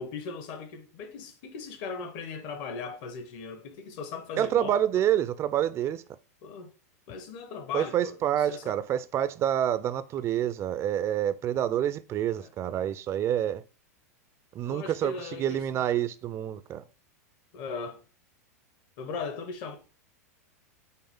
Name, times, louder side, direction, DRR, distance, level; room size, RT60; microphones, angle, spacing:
voice 1, 0.0-5.0 6.4-6.7 7.1-8.7 12.4-12.7 14.6-15.8 17.5-18.0 19.0-19.8, left 5 dB, 50° left, 0.9 m, -38 dB
voice 2, 4.4-6.0 7.7-13.6 14.5-15.1 15.4-16.8, right 10 dB, 30° right, 0.4 m, -27 dB
5.5 x 2.0 x 3.6 m
hypercardioid pair, 110°, 8 cm